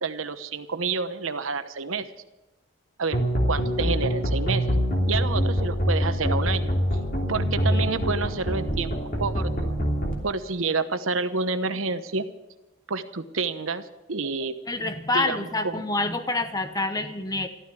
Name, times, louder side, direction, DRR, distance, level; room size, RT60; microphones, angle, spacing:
voice 1, 0.0-2.1 3.0-3.2 3.5-4.7 5.1-6.7 7.3-8.9 9.2-9.7 10.2-12.3 12.9-14.5 15.1-15.7, right 4 dB, 85° right, 10 dB, 1.0 m, -28 dB
sound 1, 3.1-10.1, equal, 45° left, 3.0 m, -25 dB
voice 2, 14.7-17.5, left 2 dB, 20° left, 9 dB, 0.9 m, -27 dB
14.0 x 13.0 x 6.9 m, 0.98 s
head